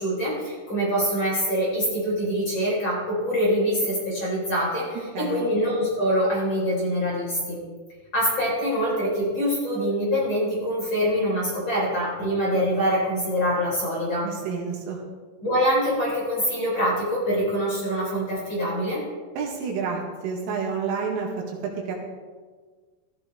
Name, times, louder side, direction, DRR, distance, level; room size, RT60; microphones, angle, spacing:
voice 1, 0.0-7.6 8.1-14.3 15.4-19.0, equal, 25° left, -5 dB, 4.1 m, -24 dB
voice 2, 5.1-5.4 14.2-15.0 19.4-22.0, right 5 dB, 80° right, -1 dB, 4.4 m, -29 dB
17.0 x 13.5 x 3.3 m, 1.4 s
omnidirectional pair, 5.9 m